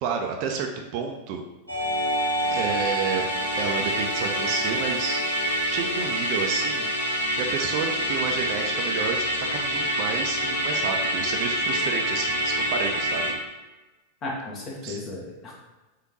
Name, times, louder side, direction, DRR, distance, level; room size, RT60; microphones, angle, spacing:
voice 1, 0.0-1.4 2.5-3.2 3.6-5.2 5.7-6.9 7.4-9.3 9.5-13.3 14.8-15.0, right 6 dB, 45° right, 3 dB, 0.4 m, -30 dB
Musical instrument, 1.7-13.3, equal, 80° right, 0.9 m, -26 dB
voice 2, 14.2-15.6, left 2 dB, 30° left, -3 dB, 1.2 m, -35 dB
3.7 x 3.4 x 3.0 m, 1.1 s
figure-of-eight pair, 90°, 0 cm